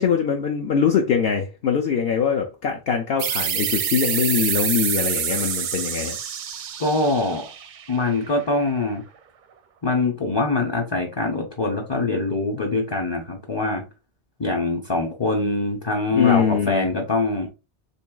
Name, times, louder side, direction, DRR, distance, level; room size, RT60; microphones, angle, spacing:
voice 1, 0.0-6.2 16.1-16.9, left 7 dB, 65° left, 0.8 m, -22 dB
sound 1, 3.2-8.5, right 8 dB, 60° right, 0.5 m, -27 dB
voice 2, 6.8-7.4 7.9-9.0 9.8-13.8 14.4-17.5, left 2 dB, 35° left, 0.5 m, -23 dB
4.5 x 3.0 x 2.2 m
omnidirectional pair, 1.1 m